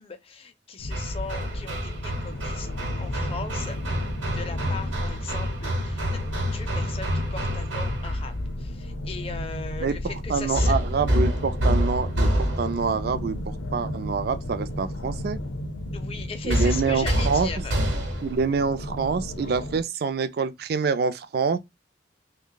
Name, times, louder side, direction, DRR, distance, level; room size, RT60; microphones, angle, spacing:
voice 1, 0.0-2.7 3.0-3.8 4.1-6.2 6.5-10.8 15.9-17.8, left 5 dB, 30° left, 0.5 m, -38 dB
sound 1, 0.8-19.8, left 1 dB, 75° left, 0.6 m, -34 dB
Hammer, 0.9-8.3 10.5-13.0 16.5-18.4, equal, 75° right, 1.0 m, -27 dB
voice 2, 10.3-15.4 16.4-17.5 18.2-21.6, right 5 dB, 55° right, 0.4 m, -26 dB
2.9 x 2.2 x 3.8 m
head